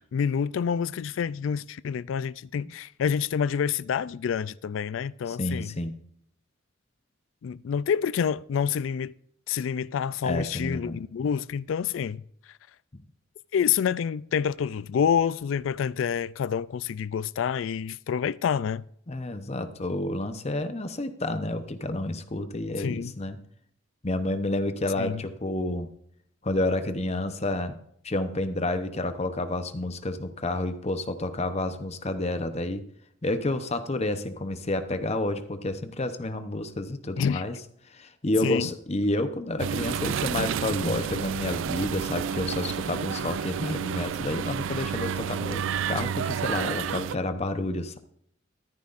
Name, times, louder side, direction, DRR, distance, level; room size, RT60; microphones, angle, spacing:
voice 1, 0.1-5.7 7.4-9.1 9.5-12.2 13.5-18.8 22.8-23.1 25.0-25.2 37.2-37.4 38.4-38.7, left 7 dB, 75° left, 0.3 m, -27 dB
voice 2, 5.3-5.9 10.2-11.0 12.9-13.0 19.1-23.4 24.0-25.9 26.4-27.8 28.0-32.8 33.2-37.5 37.9-48.0, left 2 dB, 35° left, 0.8 m, -30 dB
sound 1, 39.6-47.2, right 7 dB, 75° right, 0.4 m, -30 dB
13.5 x 10.5 x 2.5 m
head